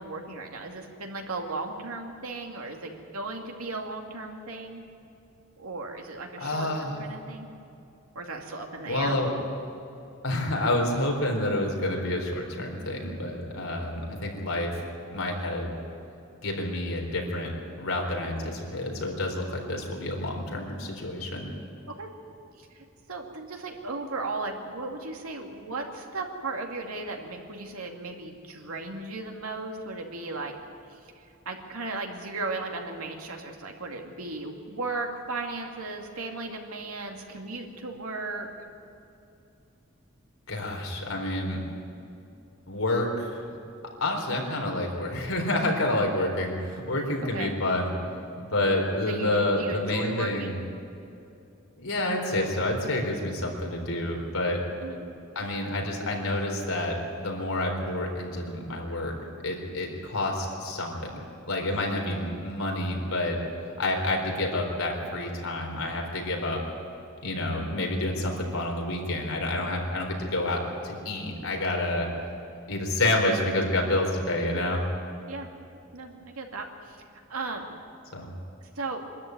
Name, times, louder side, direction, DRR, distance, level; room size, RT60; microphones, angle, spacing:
voice 1, 0.0-4.8 5.6-7.5 8.1-9.2 22.0-22.1 22.6-30.5 30.9-38.5 47.2-47.5 49.1-50.5 54.8-55.0 62.2-62.4 75.3-75.5 75.9-77.0 77.3-77.8 78.8-79.1, right 3 dB, 90° right, 2 dB, 2.6 m, -36 dB
voice 2, 6.4-7.0 8.9-9.3 10.2-14.8 15.1-15.8 16.4-17.5 17.8-21.5 40.5-41.6 42.7-43.4 44.0-47.9 48.4-50.6 51.8-54.6 55.4-59.1 59.4-63.4 63.8-66.6 67.2-72.1 72.6-74.8 78.1-78.3, left 1 dB, 80° left, 1 dB, 4.2 m, -28 dB
24.0 x 13.0 x 9.5 m, 2.7 s
head